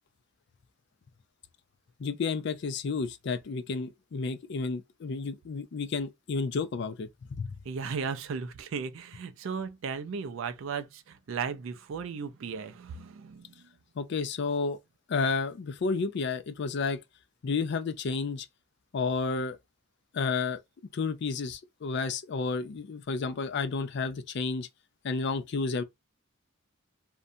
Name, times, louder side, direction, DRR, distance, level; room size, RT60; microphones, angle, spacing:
voice 1, 2.0-7.6 14.0-14.8 15.1-17.0 17.4-18.5 18.9-19.6 20.1-20.6 20.9-24.7 25.0-25.8, left 4 dB, 55° left, 0.4 m, -31 dB
voice 2, 7.7-13.7, right 5 dB, 65° right, 0.4 m, -36 dB
2.6 x 2.1 x 2.6 m
head